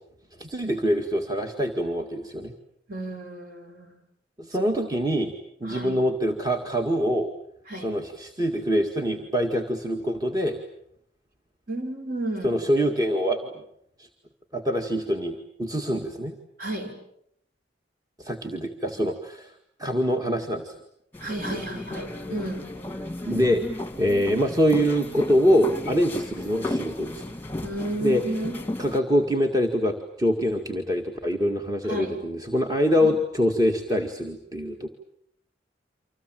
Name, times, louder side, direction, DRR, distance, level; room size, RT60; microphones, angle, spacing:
voice 1, 0.4-2.5 4.4-5.3 5.6-7.3 7.8-10.6 12.4-13.6 14.0-14.1 14.5-16.3 18.2-19.5 19.8-20.7 21.5-21.6 23.2-27.2 28.0-28.2 28.8-34.9, equal, 20° right, 2 dB, 2.0 m, -24 dB
voice 2, 2.9-4.0 5.6-5.9 7.7-7.9 11.7-12.6 16.6-16.9 21.2-22.7 27.6-28.6 31.9-32.2 33.0-33.1, right 1 dB, 50° right, 4 dB, 6.2 m, -32 dB
sound 1, 21.1-29.0, left 2 dB, 10° left, 1.8 m, -34 dB
29.0 x 26.0 x 7.8 m, 0.74 s
head